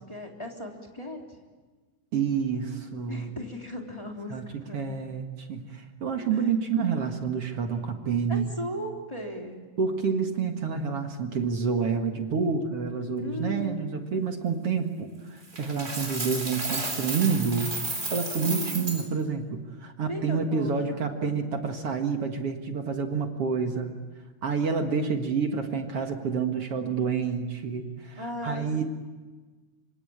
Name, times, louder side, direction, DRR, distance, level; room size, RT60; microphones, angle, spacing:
voice 1, 0.1-1.2 3.1-4.9 6.3-6.5 8.3-9.6 13.2-13.9 18.4-19.0 20.1-21.0 28.2-28.8, left 1 dB, 10° left, 1 dB, 3.1 m, -37 dB
voice 2, 2.1-3.3 4.3-4.5 4.7-8.5 9.8-17.7 18.1-24.0 24.4-28.8, right 5 dB, 50° right, 5 dB, 2.4 m, -28 dB
Coin (dropping), 15.5-19.0, right 2 dB, 20° right, 3.8 m, -32 dB
26.0 x 25.5 x 8.7 m, 1.3 s
omnidirectional pair, 3.7 m